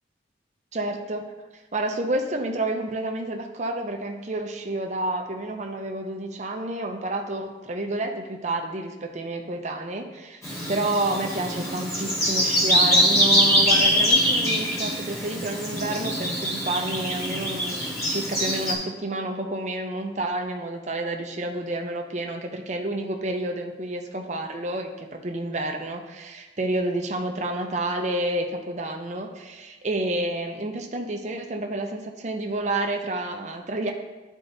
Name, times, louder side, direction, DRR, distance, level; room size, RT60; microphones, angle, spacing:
voice 1, 0.7-1.2 1.7-10.4 10.7-33.9, right 2 dB, 40° right, 3 dB, 0.6 m, -29 dB
Bird vocalization bird call bird song, 10.4-18.7, equal, 15° left, 1.6 m, -23 dB
11.5 x 4.5 x 2.7 m, 1.2 s
head